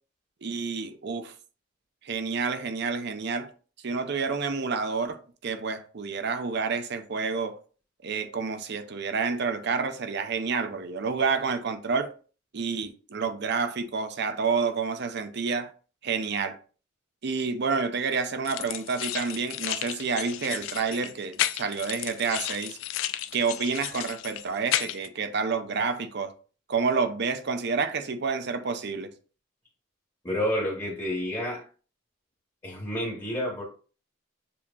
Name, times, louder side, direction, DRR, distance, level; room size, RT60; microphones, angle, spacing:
voice 1, 0.4-1.3 2.0-3.5 3.8-7.6 8.0-12.1 12.5-15.7 16.0-16.6 17.2-22.8 23.3-26.3 26.7-29.1, right 5 dB, 60° right, 0.6 m, -29 dB
sound 1, 18.4-25.1, left 12 dB, 70° left, 0.3 m, -33 dB
voice 2, 30.2-31.7 32.6-33.6, left 1 dB, 20° left, 1.1 m, -29 dB
6.8 x 2.8 x 2.4 m
head